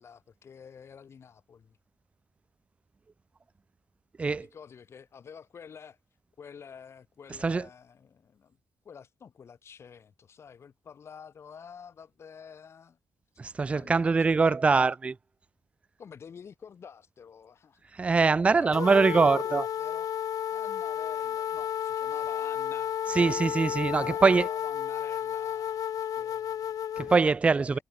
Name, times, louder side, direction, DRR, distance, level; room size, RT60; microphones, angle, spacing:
voice 1, 0.0-1.8 4.2-6.0 6.4-8.6 8.8-13.0 13.7-14.6 16.0-17.9 18.4-20.1 20.5-23.4 24.0-26.8 27.6-27.8, left 7 dB, 40° left, 7.7 m, -49 dB
voice 2, 13.4-15.2 18.0-19.6 23.2-24.5 27.0-27.8, right 4 dB, 20° right, 0.4 m, -23 dB
sound 1, 18.7-27.2, left 9 dB, 55° left, 1.2 m, -32 dB
wide cardioid pair, 180°, 7 cm